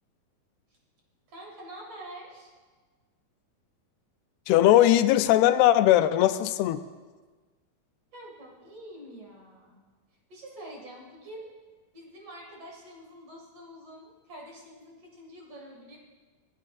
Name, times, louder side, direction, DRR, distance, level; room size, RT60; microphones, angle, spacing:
voice 1, 1.3-2.5 8.1-9.9 10.3-11.4 11.9-16.0, right 1 dB, 45° right, -2 dB, 2.8 m, -46 dB
voice 2, 4.5-6.8, left 13 dB, 85° left, 11 dB, 2.6 m, -20 dB
27.0 x 9.7 x 2.5 m, 1.4 s
omnidirectional pair, 4.5 m